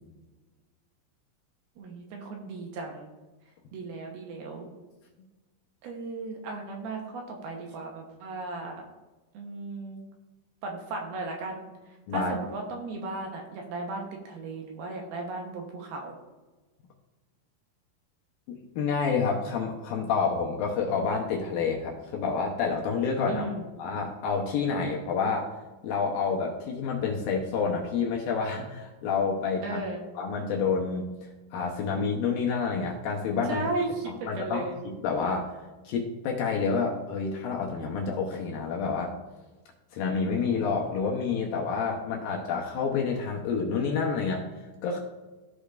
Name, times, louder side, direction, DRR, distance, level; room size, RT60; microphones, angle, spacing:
voice 1, 1.8-3.1 3.7-4.7 5.8-8.8 9.3-10.0 10.6-11.7 12.1-16.1 23.3-23.7 29.6-30.1 33.5-34.8, right 3 dB, 75° right, 1 dB, 2.7 m, -35 dB
voice 2, 18.5-23.5 23.8-25.5 25.8-29.8 30.2-31.1 31.5-33.6 34.1-35.5 35.9-39.1 39.9-44.5 44.8-45.0, left 5 dB, 75° left, 0 dB, 2.3 m, -28 dB
14.5 x 5.0 x 2.5 m, 1.2 s
omnidirectional pair, 4.8 m